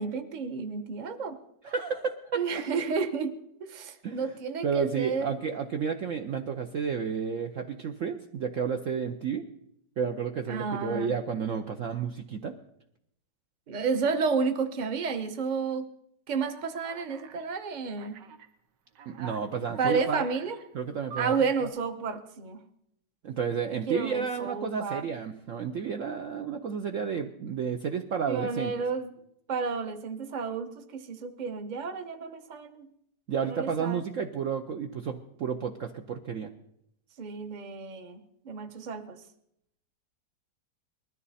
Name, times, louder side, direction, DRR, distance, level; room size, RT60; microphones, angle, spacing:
voice 1, 0.0-1.4 2.3-3.3 3.6-5.3 10.5-11.1 13.7-15.9 16.3-18.2 19.8-20.5 21.2-22.6 23.9-25.1 28.3-29.1 29.5-32.9 33.4-34.0 37.2-39.2, right 5 dB, 30° right, 7 dB, 0.9 m, -31 dB
voice 2, 1.6-2.6 4.0-4.4 4.6-9.4 10.0-12.5 19.1-20.3 20.7-21.3 23.2-28.7 33.3-36.5, right 6 dB, 60° right, 5 dB, 0.9 m, -31 dB
Alarm, 16.4-17.5 18.0-18.5 19.0-20.6 21.1-21.6, right 6 dB, 85° right, 1.6 m, -44 dB
20.0 x 13.5 x 4.2 m, 0.77 s
omnidirectional pair, 1.9 m